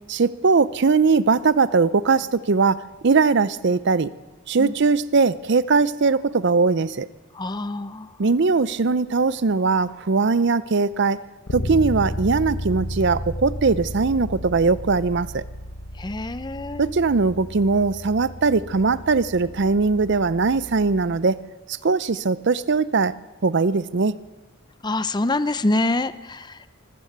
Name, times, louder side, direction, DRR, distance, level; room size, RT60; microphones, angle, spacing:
voice 1, 0.1-4.1 4.5-7.1 8.2-11.2 11.5-15.4 16.8-21.4 21.7-23.1 23.4-24.1, right 4 dB, 55° right, 17 dB, 0.6 m, -20 dB
voice 2, 7.3-8.1 16.0-16.9 24.8-26.7, left 2 dB, 20° left, 13 dB, 0.6 m, -26 dB
Bass guitar, 11.5-21.3, equal, 70° left, 1.2 m, -33 dB
24.0 x 14.0 x 8.0 m, 1.3 s
head